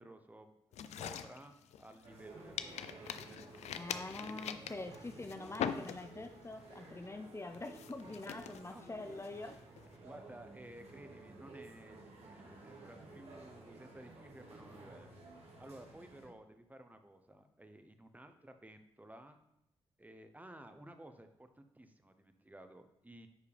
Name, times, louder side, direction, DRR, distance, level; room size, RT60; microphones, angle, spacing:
voice 1, 0.0-4.0 8.0-8.1 8.7-8.8 10.0-15.1 15.6-19.4 20.0-23.3, right 1 dB, 15° right, 8 dB, 0.8 m, -55 dB
sound 1, 0.7-2.2 2.6-6.4 6.7-7.1 7.5-9.9, left 8 dB, 75° left, 0.5 m, -43 dB
sound 2, 2.0-16.3, right 2 dB, 65° right, 2.0 m, -54 dB
voice 2, 3.7-9.6, left 2 dB, 25° left, 6 dB, 0.6 m, -45 dB
10.0 x 4.6 x 3.4 m, 0.82 s
supercardioid pair, 55°, 12 cm